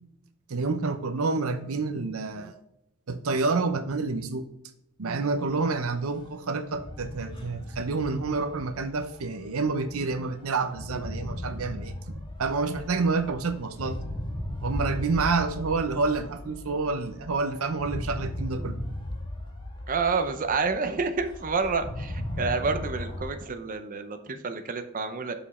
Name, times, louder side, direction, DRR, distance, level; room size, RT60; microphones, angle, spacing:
voice 1, 0.5-2.5 3.1-4.5 5.0-11.9 12.4-14.0 14.6-18.8, right 4 dB, 75° right, 9 dB, 0.7 m, -28 dB
sound 1, 5.4-23.3, left 1 dB, 25° left, 1.4 m, -37 dB
voice 2, 19.9-25.3, right 4 dB, 40° right, 7 dB, 0.7 m, -29 dB
7.0 x 5.2 x 4.2 m, 0.81 s
head